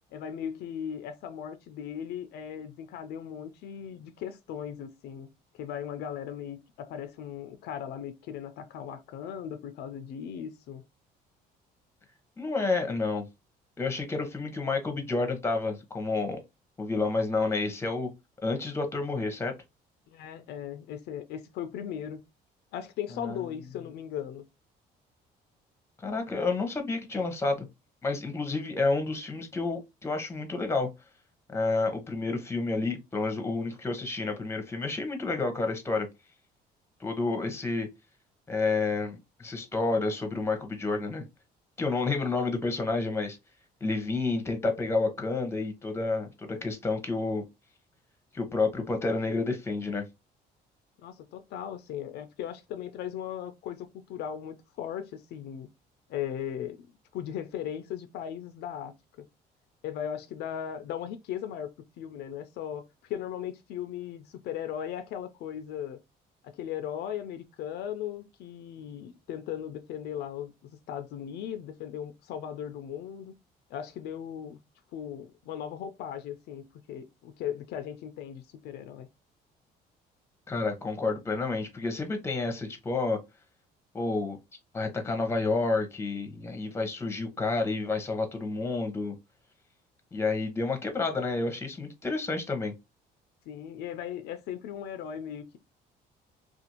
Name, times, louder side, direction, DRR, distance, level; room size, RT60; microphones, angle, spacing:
voice 1, 0.1-5.3 5.5-10.8 20.1-22.2 22.7-24.4 51.0-55.7 56.1-56.9 57.1-59.3 59.8-66.0 66.4-70.5 70.9-73.3 73.7-74.6 74.9-79.1 93.5-95.6, left 9 dB, 75° left, 0.4 m, -38 dB
voice 2, 12.4-13.2 13.8-16.4 16.8-18.1 18.4-19.5 23.2-23.4 26.0-27.7 28.0-30.9 31.5-36.1 37.0-37.9 38.5-41.2 41.8-43.4 43.8-47.4 48.3-50.0 80.5-83.2 83.9-84.4 84.7-89.1 90.1-92.7, left 3 dB, 15° left, 0.8 m, -30 dB
2.5 x 2.4 x 2.8 m
cardioid pair, 110°, 17 cm